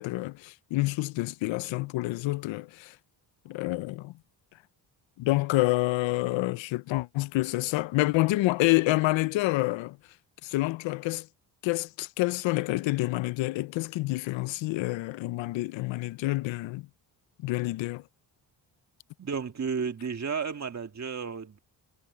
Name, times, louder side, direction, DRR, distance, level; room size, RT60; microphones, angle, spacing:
voice 1, 0.0-2.9 3.5-4.1 5.2-10.0 10.4-11.3 11.6-16.8 17.4-18.0, left 19 dB, 90° left, 0.6 m, -28 dB
voice 2, 19.2-21.6, right 6 dB, 35° right, 2.1 m, -32 dB
cardioid pair, 90°, 44 cm